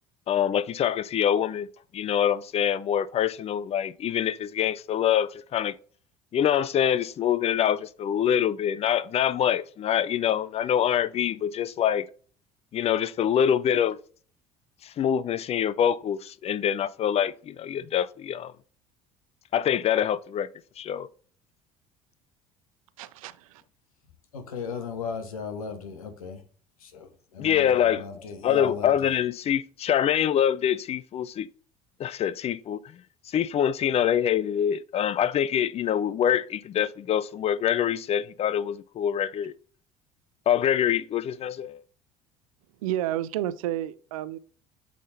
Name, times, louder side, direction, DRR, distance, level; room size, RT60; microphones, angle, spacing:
voice 1, 0.3-1.7 1.9-5.7 6.3-12.1 12.7-14.0 14.8-18.5 19.5-20.5 20.8-21.1 27.4-28.1 28.4-31.5 32.0-32.8 33.3-39.5 40.5-41.8, left 9 dB, 35° left, 0.5 m, -25 dB
voice 2, 23.0-23.6 42.8-44.4, right 13 dB, 75° right, 0.5 m, -31 dB
voice 3, 24.3-26.4 26.8-29.1, left 5 dB, 80° left, 1.1 m, -36 dB
8.3 x 3.7 x 4.0 m
figure-of-eight pair, 60°, 18 cm